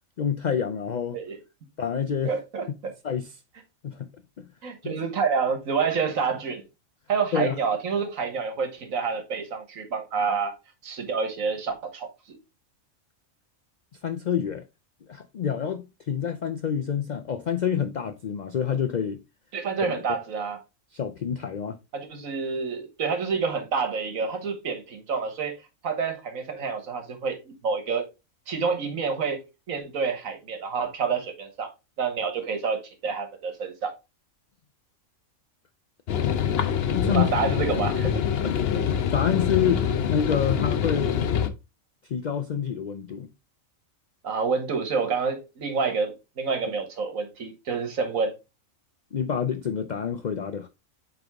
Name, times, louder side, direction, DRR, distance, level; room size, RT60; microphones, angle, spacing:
voice 1, 0.2-1.2 1.8-2.4 3.0-3.4 3.8-4.1 4.4-4.5 4.8-4.9 7.3-7.6 14.0-14.6 15.1-19.2 20.9-21.8 36.9-37.3 38.2-38.5 39.1-41.3 42.0-43.3 49.1-50.7, left 8 dB, 75° left, 0.4 m, -27 dB
voice 2, 2.3-2.9 4.6-6.6 7.1-10.5 10.8-12.4 19.5-20.6 21.9-25.6 25.8-28.1 28.5-31.7 32.0-33.9 37.1-38.2 44.2-48.4, right 5 dB, 75° right, 1.7 m, -28 dB
sound 1, 36.1-41.5, left 8 dB, 55° left, 0.8 m, -25 dB
7.8 x 3.5 x 3.5 m
omnidirectional pair, 1.4 m